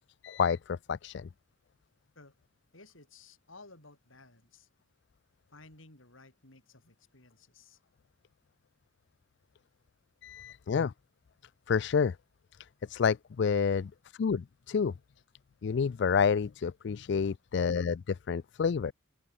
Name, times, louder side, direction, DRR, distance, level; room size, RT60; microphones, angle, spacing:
voice 1, 0.2-1.3 10.2-10.9 11.7-12.2 12.9-13.9 14.2-14.9 15.6-18.9, left 6 dB, 60° left, 0.4 m, -29 dB
voice 2, 2.7-4.7 5.5-7.8 10.4-10.6, left 3 dB, 85° left, 6.2 m, -56 dB
head